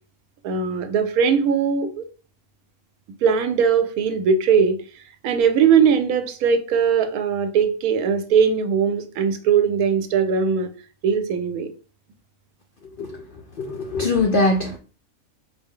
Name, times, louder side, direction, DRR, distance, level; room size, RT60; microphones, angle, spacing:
voice 1, 0.4-2.0 3.2-4.8 5.2-10.7 11.0-11.7, right 6 dB, 90° right, 1.1 m, -20 dB
voice 2, 13.6-14.8, left 2 dB, 90° left, 0.4 m, -21 dB
4.6 x 2.1 x 3.6 m
omnidirectional pair, 1.5 m